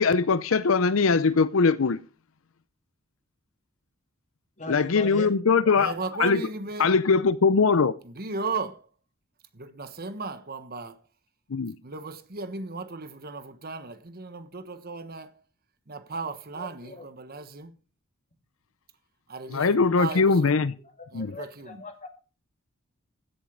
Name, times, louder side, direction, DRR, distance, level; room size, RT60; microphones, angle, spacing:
voice 1, 0.0-2.0 4.7-5.9 6.2-6.4 6.8-7.9 11.5-11.7 19.5-20.7 21.1-21.3, left 4 dB, 70° left, 0.6 m, -21 dB
voice 2, 4.6-5.9 16.5-17.0 20.1-20.2 20.8-22.1, left 2 dB, 35° left, 2.4 m, -40 dB
voice 3, 5.7-6.9 8.0-8.9 9.5-11.0 11.8-15.4 15.9-17.8 19.3-20.6 21.1-21.8, right 4 dB, 45° right, 1.3 m, -36 dB
15.5 x 7.4 x 5.1 m
head